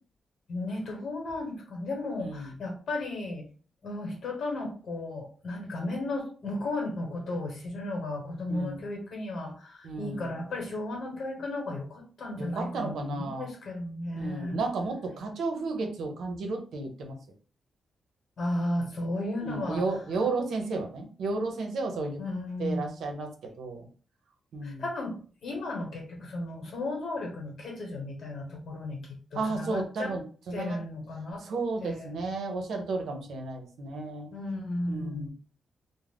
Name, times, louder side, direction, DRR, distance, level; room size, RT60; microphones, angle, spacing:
voice 1, 0.5-3.5 3.8-14.6 18.4-19.8 22.2-23.0 24.6-30.2 30.5-31.5 31.8-32.1 34.3-35.3, left 2 dB, 60° left, 0 dB, 1.0 m, -34 dB
voice 2, 2.2-2.5 8.5-8.8 9.8-10.4 12.4-13.5 14.2-17.2 19.4-22.2 22.6-23.9 24.5-24.8 29.3-30.8 31.4-34.3 34.9-35.3, right 3 dB, 85° right, 3 dB, 0.6 m, -33 dB
2.4 x 2.1 x 3.4 m, 0.41 s
wide cardioid pair, 155°, 0 cm